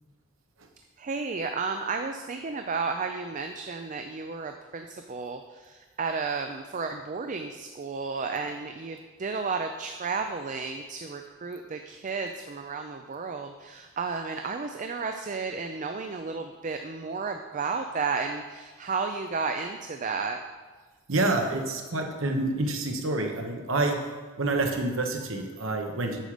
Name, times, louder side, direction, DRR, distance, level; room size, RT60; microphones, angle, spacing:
voice 1, 1.0-20.4, right 4 dB, 40° right, 5 dB, 0.5 m, -33 dB
voice 2, 21.1-24.0 24.4-26.2, right 2 dB, 70° right, 3 dB, 1.2 m, -27 dB
9.2 x 6.5 x 5.0 m, 1.3 s
head